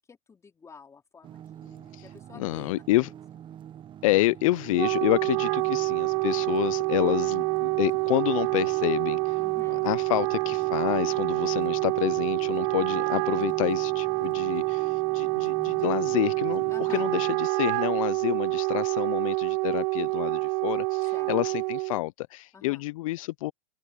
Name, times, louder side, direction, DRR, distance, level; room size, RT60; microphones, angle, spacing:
voice 1, 0.0-2.8 9.4-9.9 16.7-17.1 21.1-21.4 22.5-22.8, left 5 dB, 15° left, 4.0 m, -50 dB
sound 1, 1.2-17.3, right 10 dB, 25° right, 0.9 m, -46 dB
voice 2, 1.9-3.1 4.0-9.4 9.7-23.5, left 19 dB, 65° left, 0.5 m, -28 dB
Wind instrument woodwind instrument, 4.5-22.0, right 30 dB, 50° right, 0.4 m, -27 dB
sound 2, 7.5-13.5, left 14 dB, 35° left, 2.1 m, -59 dB
open air
hypercardioid pair, 130°, 19 cm